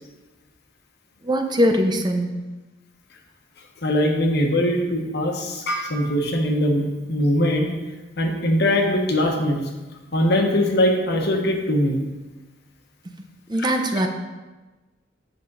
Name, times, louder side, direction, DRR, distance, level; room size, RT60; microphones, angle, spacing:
voice 1, 1.2-2.3 13.5-14.1, equal, 25° right, 4 dB, 0.6 m, -21 dB
voice 2, 3.8-7.7 8.2-9.6 10.1-12.0 13.6-13.7, left 1 dB, 60° left, 2 dB, 1.2 m, -21 dB
7.9 x 6.8 x 4.0 m, 1.2 s
head